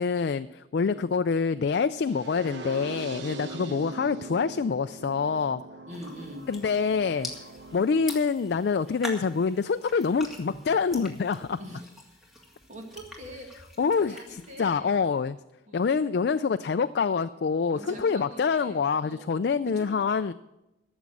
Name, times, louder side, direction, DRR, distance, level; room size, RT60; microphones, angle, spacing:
voice 1, 0.0-5.6 6.5-7.3 7.7-11.6 13.8-14.2 14.6-15.4 15.7-20.3, left 5 dB, 55° left, 10 dB, 0.3 m, -26 dB
voice 2, 0.7-1.1 3.5-3.9 5.9-6.5 11.6-12.1 12.7-15.0 15.7-15.9 17.7-19.9, equal, 40° right, 1 dB, 1.8 m, -44 dB
sound 1, 2.1-8.0, right 3 dB, 65° right, 0.9 m, -41 dB
sound 2, 5.9-14.6, left 1 dB, ahead, 2.0 m, -44 dB
13.5 x 7.2 x 7.7 m, 0.92 s
head